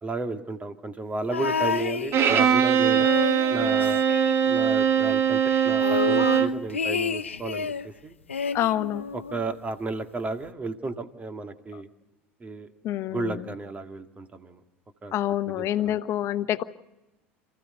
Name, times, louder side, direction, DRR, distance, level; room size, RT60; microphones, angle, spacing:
voice 1, 0.0-3.1 3.5-4.0 4.4-7.7 8.0-8.1 9.1-11.9 12.4-12.7 13.1-14.6 15.0-15.1 15.5-16.0, right 3 dB, 20° right, 7 dB, 1.9 m, -33 dB
sound 1, 1.3-2.6 2.9-4.8 5.1-5.2 5.5-7.9 8.3-9.6 10.4-10.5, left 5 dB, 85° left, 0.7 m, -30 dB
Bowed string instrument, 2.1-6.6, right 8 dB, 40° right, 1.6 m, -21 dB
voice 2, 8.5-9.0 12.8-13.4 15.1-16.6, left 12 dB, 45° left, 13 dB, 1.0 m, -27 dB
27.5 x 15.5 x 6.7 m, 1.0 s
figure-of-eight pair, 75°, 7 cm